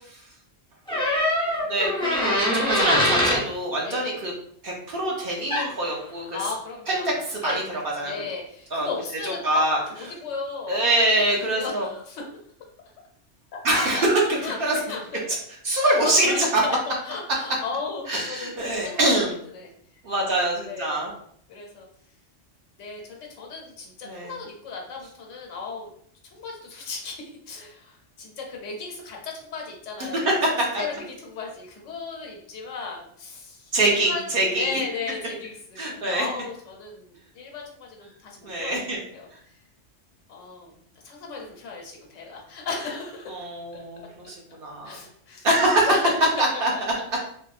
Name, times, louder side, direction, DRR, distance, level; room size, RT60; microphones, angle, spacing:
sound 1, 0.9-3.4 5.5-5.7, left 1 dB, 5° left, 0.4 m, -23 dB
voice 1, 1.6-4.3 4.6-6.2 6.9-7.6 8.0-8.1 8.7-8.9 9.2-9.8 10.7-11.9 13.6-14.2 14.6-14.8 15.6-16.3 16.5-16.6 18.1-19.3 20.0-21.1 24.0-24.3 30.3-30.7 33.7-34.8 35.8-36.3 38.4-39.0 43.3-44.0 44.3-45.0 45.4-46.0 46.4-46.7, right 1 dB, 55° right, -2 dB, 0.8 m, -24 dB
voice 2, 3.8-4.2 6.3-7.1 7.4-9.4 9.9-10.8 11.3-12.3 13.5-14.0 14.4-14.6 14.9-15.2 15.8-18.5 18.8-19.7 20.2-21.0 21.5-21.9 22.8-25.9 26.2-30.4 30.7-34.3 34.5-38.8 39.1-39.6 40.3-40.8 41.0-43.4 43.7-43.8 44.8-45.5 45.9-46.8, left 4 dB, 85° left, 0 dB, 1.0 m, -35 dB
3.4 x 2.0 x 2.4 m, 0.64 s
omnidirectional pair, 1.2 m